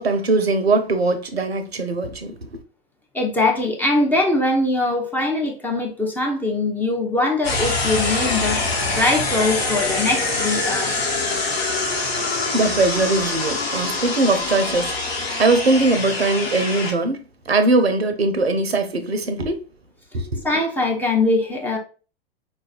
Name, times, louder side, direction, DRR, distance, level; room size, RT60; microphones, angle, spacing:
voice 1, 0.0-2.5 12.5-14.9 15.4-17.2 17.5-19.6 20.1-20.4, right 3 dB, 85° right, 0.6 m, -20 dB
voice 2, 3.1-11.0 20.4-21.8, left 2 dB, 5° left, 0.4 m, -22 dB
sound 1, 7.4-16.9, left 3 dB, 75° left, 1.0 m, -24 dB
4.1 x 2.3 x 2.3 m
figure-of-eight pair, 95°, 30 cm